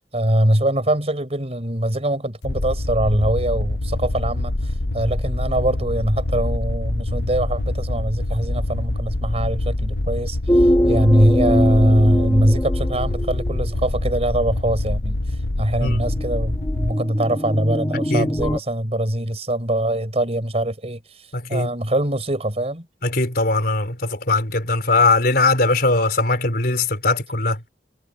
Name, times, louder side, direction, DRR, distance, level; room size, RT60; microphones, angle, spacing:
voice 1, 0.0-22.8, right 1 dB, 35° right, 5.0 m, -22 dB
sound 1, 2.4-16.9, left 1 dB, 75° left, 1.1 m, -25 dB
sound 2, 10.5-13.6 15.9-18.6, equal, 15° left, 1.9 m, -22 dB
voice 2, 21.3-21.7 23.0-27.6, left 3 dB, 60° left, 4.6 m, -20 dB
head